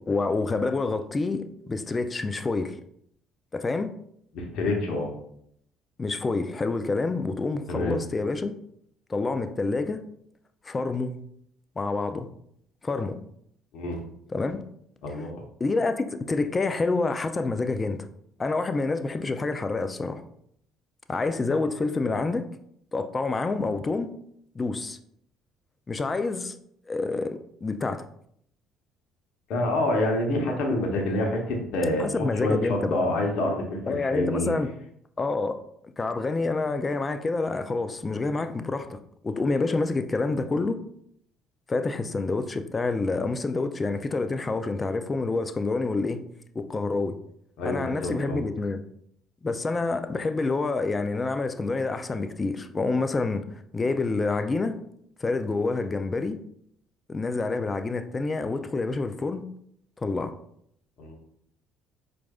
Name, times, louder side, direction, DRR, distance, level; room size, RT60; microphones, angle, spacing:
voice 1, 0.1-2.8 3.5-3.9 6.0-8.5 9.1-10.0 10.6-11.2 11.8-12.3 12.8-13.2 14.3-14.6 15.6-18.1 18.4-20.2 21.1-22.5 22.9-24.1 24.5-25.0 25.9-26.6 26.9-28.0 32.0-33.0 33.9-34.7 35.2-35.6 36.0-39.0 39.2-40.8 41.7-46.2 46.5-47.2 47.6-48.8 49.4-54.8 55.2-56.4 57.1-59.4 60.0-60.3, left 3 dB, 30° left, 0.4 m, -27 dB
voice 2, 4.3-5.1 7.7-8.0 13.7-14.0 15.0-15.4 29.5-32.1 32.4-34.5 47.6-48.4 61.0-61.2, left 1 dB, 65° left, 0.9 m, -27 dB
4.6 x 2.5 x 2.3 m
hypercardioid pair, 60°, 0 cm